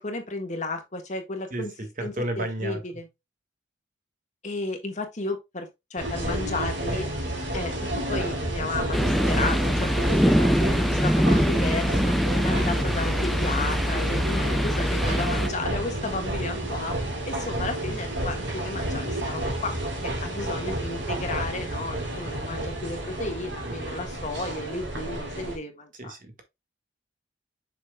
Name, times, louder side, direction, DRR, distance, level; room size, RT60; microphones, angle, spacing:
voice 1, 0.0-1.7 2.0-3.1 4.4-7.0 7.5-12.1 12.4-17.0 17.2-19.8 20.0-26.1, left 2 dB, 40° left, 1.6 m, -33 dB
voice 2, 2.0-2.8 23.6-23.7 26.0-26.4, right 1 dB, 45° right, 1.6 m, -31 dB
sound 1, 6.0-25.6, right 1 dB, 60° right, 3.1 m, -31 dB
sound 2, 8.9-15.5, equal, ahead, 0.4 m, -23 dB
7.0 x 6.0 x 2.3 m
head